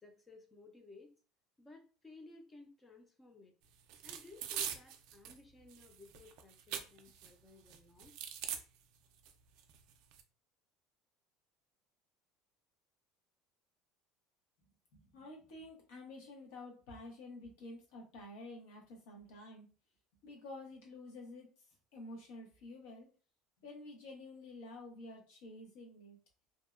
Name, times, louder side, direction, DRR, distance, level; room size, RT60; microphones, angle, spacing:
voice 1, 0.0-1.1 1.6-3.5 4.0-8.1, left 3 dB, 15° left, 3 dB, 0.3 m, -57 dB
sound 1, 3.9-5.4 5.7-7.3 7.7-8.6 9.3-9.4 9.6-10.2, right 9 dB, 65° right, 0.3 m, -42 dB
voice 2, 15.0-19.7 20.2-21.5 21.9-23.1 23.6-26.2, left 2 dB, 80° left, 0 dB, 0.9 m, -50 dB
2.6 x 2.1 x 2.3 m, 0.36 s
cardioid pair, 160°, 0 cm